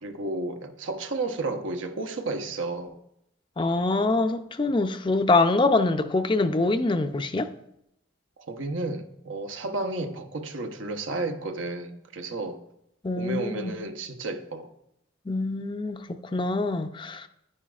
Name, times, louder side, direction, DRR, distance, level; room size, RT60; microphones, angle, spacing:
voice 1, 0.0-3.0 8.4-12.6 13.2-14.7, right 2 dB, 85° right, 0.9 m, -32 dB
voice 2, 3.6-7.5 13.0-13.7 15.3-17.3, left 3 dB, 25° left, 0.4 m, -24 dB
10.0 x 9.8 x 2.4 m
head